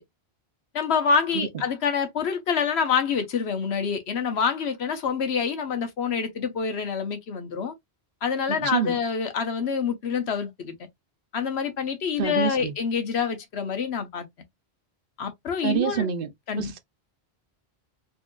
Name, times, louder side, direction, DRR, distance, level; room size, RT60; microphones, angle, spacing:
voice 1, 0.7-7.7 8.2-10.7 11.3-14.3 15.2-16.1 16.5-16.7, left 6 dB, 75° left, 1.1 m, -26 dB
voice 2, 8.5-9.0 12.2-12.7 15.6-16.3 16.6-16.8, right 8 dB, 60° right, 0.8 m, -27 dB
4.1 x 2.7 x 2.4 m
omnidirectional pair, 1.1 m